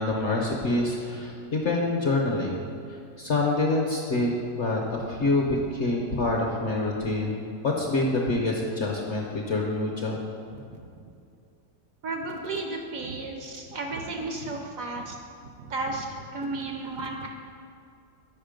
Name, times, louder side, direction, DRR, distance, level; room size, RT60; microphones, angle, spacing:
voice 1, 0.0-2.6 2.9-10.2, left 2 dB, 55° left, -1 dB, 0.8 m, -26 dB
voice 2, 12.0-15.2 15.6-16.1 16.3-17.3, right 2 dB, 65° right, 2 dB, 0.9 m, -33 dB
7.2 x 5.5 x 5.1 m, 2.4 s
omnidirectional pair, 1.9 m